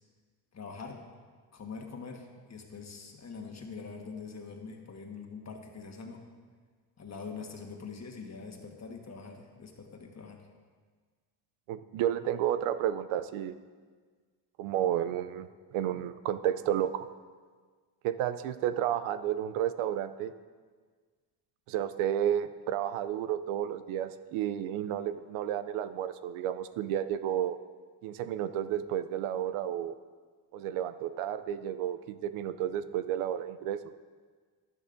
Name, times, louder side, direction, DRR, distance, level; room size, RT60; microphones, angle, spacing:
voice 1, 0.5-1.0 1.5-6.3 7.0-10.4, left 5 dB, 30° left, 2 dB, 1.4 m, -44 dB
voice 2, 11.7-13.5 14.6-17.1 18.0-20.3 21.7-27.6 28.0-29.9 30.5-33.8, right 10 dB, 90° right, 12 dB, 0.6 m, -31 dB
11.0 x 10.5 x 2.6 m, 1.5 s
cardioid pair, 90°, 49 cm